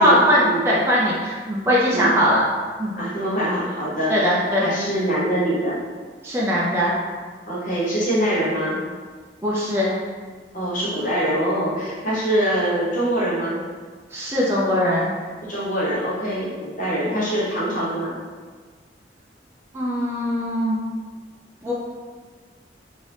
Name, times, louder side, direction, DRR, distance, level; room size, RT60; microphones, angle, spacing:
voice 1, 0.0-2.4 2.8-3.0 4.1-4.8 6.2-7.0 9.4-9.9 14.1-15.1 19.7-20.8 21.6-21.7, equal, 15° right, -7 dB, 0.4 m, -20 dB
voice 2, 3.0-5.8 7.5-8.8 10.5-13.6 15.4-18.2, right 1 dB, 50° left, -8 dB, 0.8 m, -24 dB
2.9 x 2.6 x 3.2 m, 1.5 s
head